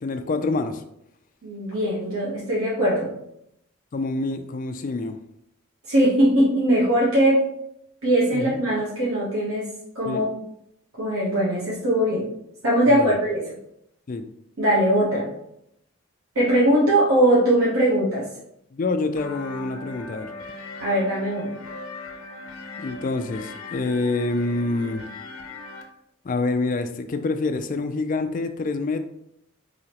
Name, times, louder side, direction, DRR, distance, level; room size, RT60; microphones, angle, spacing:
voice 1, 0.0-0.8 3.9-5.2 8.3-8.6 10.0-10.2 12.9-13.2 14.1-14.2 18.7-20.3 22.8-25.0 26.2-29.0, left 3 dB, 40° left, 7 dB, 0.3 m, -26 dB
voice 2, 1.4-3.1 5.9-7.5 8.0-9.7 9.9-10.3 11.0-12.3 12.6-13.4 14.6-15.3 16.3-18.3 20.8-21.5, right 1 dB, 80° right, -6 dB, 1.0 m, -20 dB
sound 1, 19.2-25.8, left 3 dB, 85° left, 0.6 m, -39 dB
4.9 x 2.8 x 2.9 m, 0.78 s
head